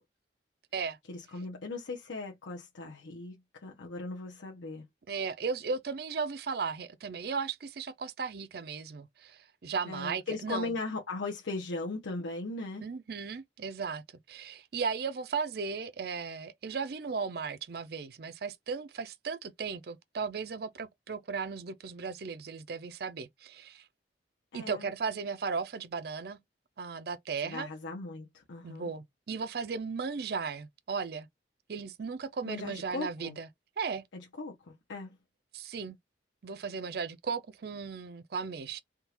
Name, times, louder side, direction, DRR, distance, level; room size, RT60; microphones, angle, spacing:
voice 1, 1.1-4.9 9.9-12.8 24.5-24.9 27.4-28.9 32.4-33.4 34.1-35.2, left 3 dB, 90° left, 0.8 m, -38 dB
voice 2, 5.1-10.7 12.8-23.8 24.5-26.4 26.8-27.7 28.6-31.3 31.7-33.5 33.8-34.0 35.5-36.0 36.4-38.8, right 5 dB, 55° right, 0.4 m, -36 dB
3.6 x 2.3 x 2.9 m
head